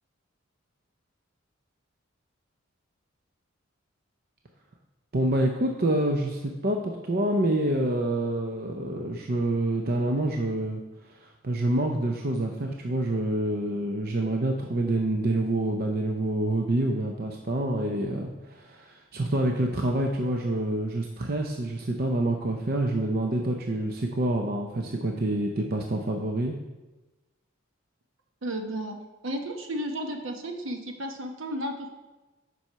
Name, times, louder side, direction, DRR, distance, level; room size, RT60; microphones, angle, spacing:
voice 1, 5.1-10.8 11.1-26.6, right 1 dB, 45° right, 2 dB, 0.6 m, -27 dB
voice 2, 28.4-31.9, equal, 65° right, 4 dB, 1.0 m, -33 dB
7.6 x 5.5 x 5.6 m, 1.1 s
head